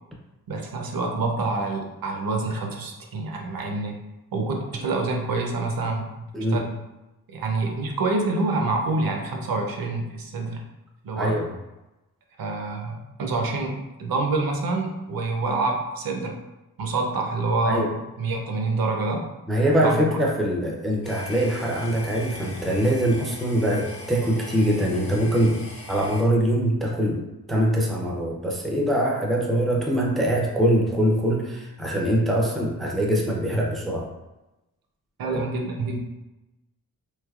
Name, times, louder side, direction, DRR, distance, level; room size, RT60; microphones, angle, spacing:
voice 1, 0.5-4.0 4.3-6.7 7.3-10.6 11.0-11.4 12.4-16.4 16.8-17.9 18.2-19.3 19.8-20.1 35.2-36.0, right 3 dB, 70° right, 1 dB, 0.7 m, -27 dB
voice 2, 6.3-6.6 11.2-11.5 17.7-17.9 19.5-25.6 25.9-27.2 27.5-34.1 35.2-35.4, equal, ahead, -1 dB, 0.4 m, -23 dB
sound 1, 21.0-26.2, left 1 dB, 55° left, 0.8 m, -40 dB
3.3 x 3.0 x 2.3 m, 0.99 s
wide cardioid pair, 135°, 37 cm